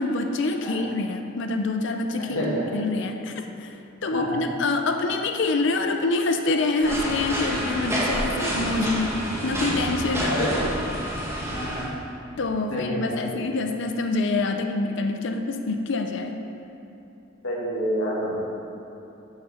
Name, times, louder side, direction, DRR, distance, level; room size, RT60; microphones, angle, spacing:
voice 1, 0.0-3.3 3.6-3.7 4.0-10.5 12.4-16.4, left 3 dB, 60° left, 5 dB, 0.5 m, -26 dB
voice 2, 4.1-4.4 10.3-10.6 11.5-11.9 12.7-13.4 17.4-18.4, equal, 90° left, -5 dB, 1.9 m, -28 dB
sound 1, 6.8-11.9, equal, 15° right, 1.2 m, -28 dB
6.4 x 6.3 x 6.3 m, 2.9 s
head